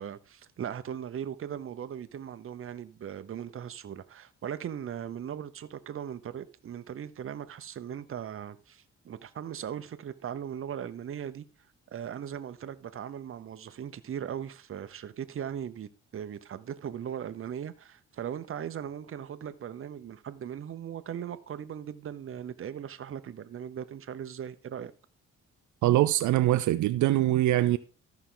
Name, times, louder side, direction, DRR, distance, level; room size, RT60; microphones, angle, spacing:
voice 1, 0.0-11.4 11.9-24.9, right 9 dB, 45° right, 0.8 m, -39 dB
voice 2, 25.8-27.8, right 14 dB, 75° right, 0.5 m, -23 dB
13.5 x 5.9 x 3.9 m
cardioid pair, 90°, 30 cm